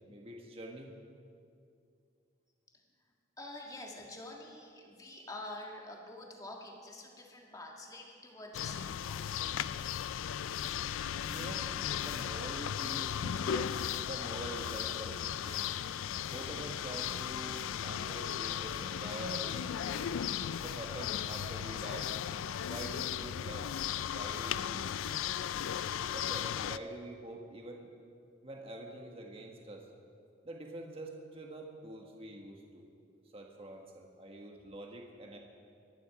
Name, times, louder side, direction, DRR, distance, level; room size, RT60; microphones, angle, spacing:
voice 1, 0.1-0.9 11.1-11.7 12.0-15.7 16.3-20.1 20.6-22.1 22.6-23.7 24.0-24.8 26.0-27.9 28.4-29.9 30.4-32.9 33.3-35.4, right 1 dB, 30° right, 1 dB, 1.4 m, -45 dB
voice 2, 3.4-9.6, left 2 dB, 20° left, 0 dB, 1.7 m, -47 dB
sound 1, 8.5-26.8, left 9 dB, 90° left, 0.4 m, -36 dB
23.5 x 10.5 x 4.9 m, 2.4 s
head